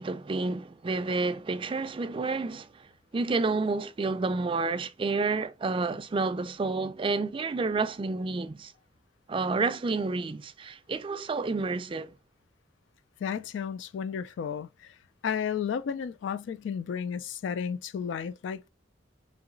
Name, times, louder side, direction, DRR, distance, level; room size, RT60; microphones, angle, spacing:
voice 1, 0.0-2.9 3.1-8.7 9.3-12.1, right 3 dB, 25° right, 0.3 m, -30 dB
voice 2, 13.2-14.9 15.2-18.7, left 7 dB, 70° left, 0.3 m, -33 dB
3.9 x 2.9 x 3.7 m
head